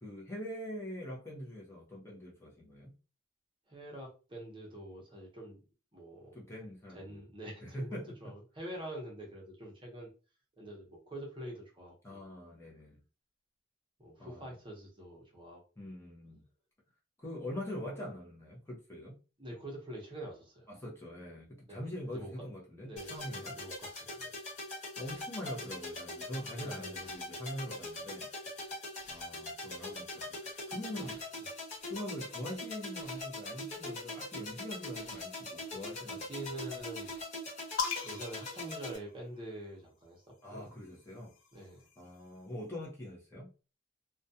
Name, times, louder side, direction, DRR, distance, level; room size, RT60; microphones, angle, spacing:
voice 1, 0.0-2.9 6.3-7.2 7.6-8.3 12.0-13.0 14.2-14.5 15.8-16.4 17.2-19.2 20.7-23.6 25.0-28.3 29.1-31.2 31.9-36.2 40.4-41.3 42.0-43.5, left 1 dB, 15° left, 0.7 m, -43 dB
voice 2, 3.7-5.6 5.9-6.4 6.9-10.1 10.6-12.2 14.0-15.9 19.4-20.7 21.7-22.3 22.7-24.3 26.5-27.1 30.9-31.1 36.1-37.1 38.0-40.7 41.5-41.9, right 1 dB, 25° right, 0.8 m, -46 dB
sound 1, 23.0-39.0, left 2 dB, 35° left, 1.2 m, -42 dB
sound 2, 37.8-39.6 40.7-42.3, left 6 dB, 90° left, 0.6 m, -40 dB
2.3 x 2.2 x 2.7 m
head